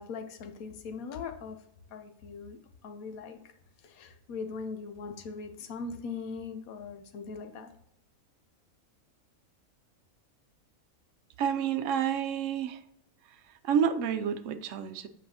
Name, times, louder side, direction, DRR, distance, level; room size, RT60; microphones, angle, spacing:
voice 1, 0.0-1.6 1.9-3.5 3.8-7.7, left 5 dB, 85° left, 6 dB, 1.2 m, -40 dB
voice 2, 11.4-12.8 13.3-13.4 13.6-15.1, right 8 dB, 70° right, 9 dB, 0.9 m, -29 dB
7.5 x 4.8 x 2.8 m, 0.74 s
omnidirectional pair, 1.5 m